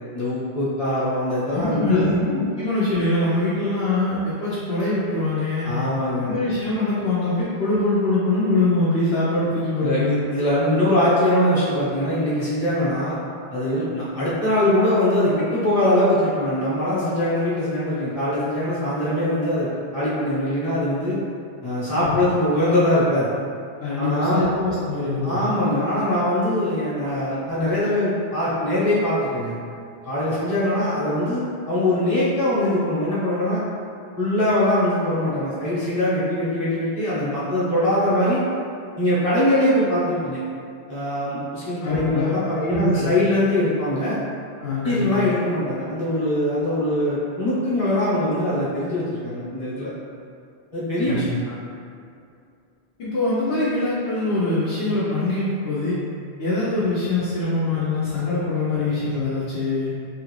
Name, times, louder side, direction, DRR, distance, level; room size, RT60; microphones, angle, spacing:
voice 1, 0.1-2.2 5.6-6.3 9.8-10.0 10.3-13.2 13.5-21.2 21.6-23.3 24.0-24.4 25.2-29.6 30.0-33.6 34.2-38.4 39.0-40.4 40.9-44.2 44.8-49.9 50.7-51.3, left 1 dB, 35° left, -11 dB, 1.0 m, -22 dB
voice 2, 1.5-5.7 6.2-10.2 21.9-22.2 23.8-25.4 41.8-43.1 44.6-45.1 51.0-51.4 53.0-56.0 56.4-59.9, left 2 dB, 80° left, -10 dB, 0.9 m, -23 dB
3.0 x 2.5 x 3.0 m, 2.4 s
omnidirectional pair, 1.1 m